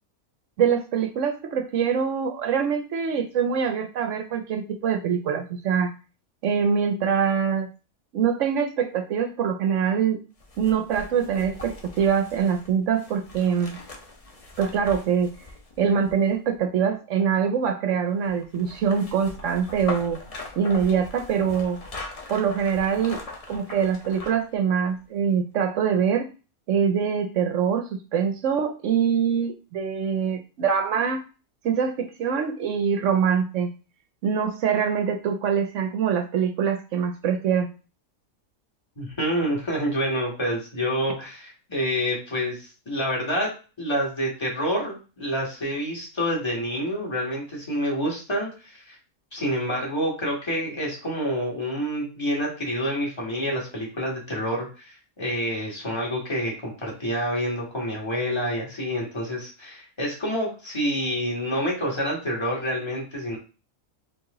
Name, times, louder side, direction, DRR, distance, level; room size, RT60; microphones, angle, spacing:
voice 1, 0.6-5.9 6.4-7.7 8.1-10.2 10.6-13.8 14.6-15.3 15.8-20.2 20.6-21.8 22.3-23.2 23.5-26.3 26.7-31.2 31.6-33.7 34.2-37.7, right 7 dB, 65° right, 6 dB, 0.8 m, -24 dB
sound 1, 10.4-16.6 18.2-24.5 24.9-25.0, left 3 dB, 35° left, 0.6 m, -41 dB
voice 2, 39.0-43.5 43.8-49.0 49.3-63.4, equal, 20° left, -3 dB, 1.6 m, -28 dB
4.6 x 2.6 x 3.7 m, 0.33 s
omnidirectional pair, 1.5 m